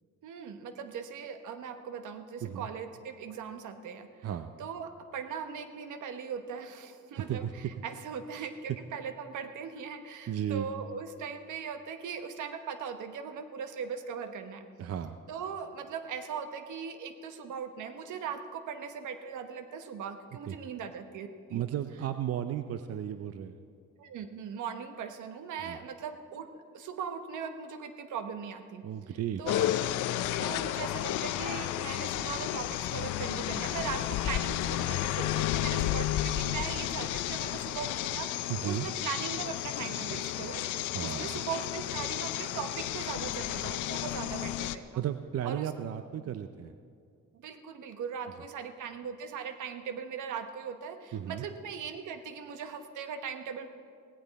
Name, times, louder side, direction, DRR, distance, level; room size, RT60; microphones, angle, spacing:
voice 1, 0.2-4.3 4.6-14.7 15.3-21.6 24.0-28.8 29.4-29.7 30.4-45.0 45.4-45.7 47.3-53.7, right 6 dB, 80° right, 8 dB, 1.1 m, -39 dB
voice 2, 7.1-7.5 8.3-8.5 10.3-10.7 14.8-15.2 20.5-20.6 21.5-23.5 25.6-25.8 28.8-29.4 35.8-35.9 38.5-38.9 40.9-41.4 45.0-46.7 51.1-51.5, right 10 dB, 55° right, 10 dB, 0.6 m, -34 dB
sound 1, 29.4-44.8, left 13 dB, 85° left, 0.6 m, -32 dB
17.5 x 16.0 x 4.2 m, 2.3 s
cardioid pair, 90°, 30 cm